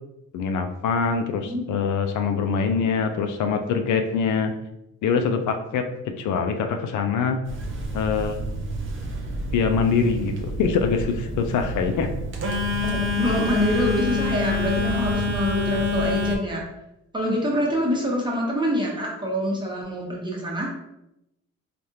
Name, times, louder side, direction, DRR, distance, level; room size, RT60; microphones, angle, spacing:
voice 1, 0.3-4.5 5.0-5.8 6.2-7.4 7.9-8.4 9.5-12.1, left 5 dB, 75° left, 5 dB, 0.5 m, -24 dB
voice 2, 1.4-1.9 12.8-16.6 17.1-20.7, equal, 15° right, -2 dB, 1.0 m, -26 dB
Telephone, 7.5-16.4, left 2 dB, 40° right, 0.7 m, -27 dB
3.3 x 2.4 x 2.8 m, 0.85 s
cardioid pair, 90°, 30 cm